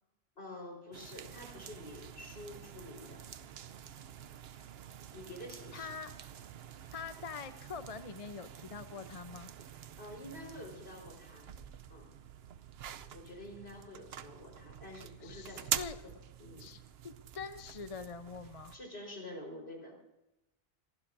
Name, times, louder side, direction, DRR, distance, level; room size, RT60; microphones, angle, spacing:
voice 1, 0.4-3.2 5.1-5.9 10.0-11.5 11.9-12.1 13.1-15.6 16.0-16.1 16.4-16.7 18.7-20.0, left 1 dB, 75° left, -1 dB, 4.7 m, -48 dB
sound 1, 0.9-18.8, right 9 dB, 75° right, 0.9 m, -46 dB
voice 2, 5.7-6.1 6.9-9.5 15.2-16.0 16.6-18.7, left 5 dB, 40° left, 9 dB, 0.8 m, -44 dB
28.0 x 15.5 x 2.6 m, 0.92 s
omnidirectional pair, 1.1 m